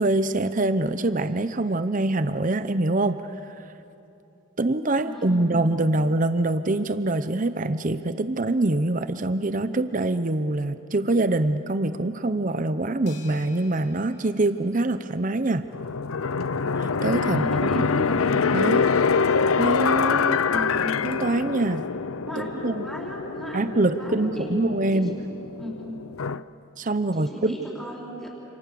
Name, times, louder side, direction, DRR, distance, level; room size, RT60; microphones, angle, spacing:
voice 1, 0.0-3.2 3.5-3.6 4.6-15.7 16.8-17.9 18.5-18.9 19.6-20.4 21.0-21.8 22.4-22.9 23.5-25.2 26.8-27.5, right 2 dB, 40° right, 11 dB, 0.7 m, -24 dB
voice 2, 5.0-5.6 17.2-18.4 20.5-20.9 22.2-25.0 25.5-25.9 27.1-28.3, equal, ahead, -4 dB, 4.9 m, -35 dB
sound 1, 13.1-15.5, left 5 dB, 55° left, 4.1 m, -52 dB
sound 2, 15.7-26.4, left 5 dB, 90° left, 0.6 m, -25 dB
29.0 x 28.0 x 6.9 m, 2.8 s
head